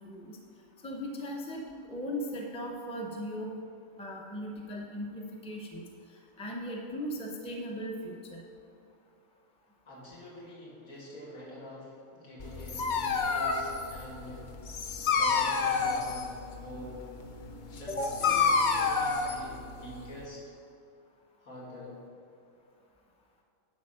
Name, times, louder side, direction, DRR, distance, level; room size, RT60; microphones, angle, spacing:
voice 1, 0.0-0.4 0.8-3.5 4.0-5.8 6.4-8.4 17.9-18.3, equal, 5° left, 0 dB, 0.5 m, -37 dB
voice 2, 9.9-14.5 14.8-16.3 16.5-17.0 17.7-19.5 19.8-20.4 21.4-22.0, left 1 dB, 85° left, -6 dB, 2.5 m, -45 dB
Dog, 12.4-20.2, left 5 dB, 55° left, 0.5 m, -29 dB
10.5 x 4.1 x 5.6 m, 2.5 s
omnidirectional pair, 1.4 m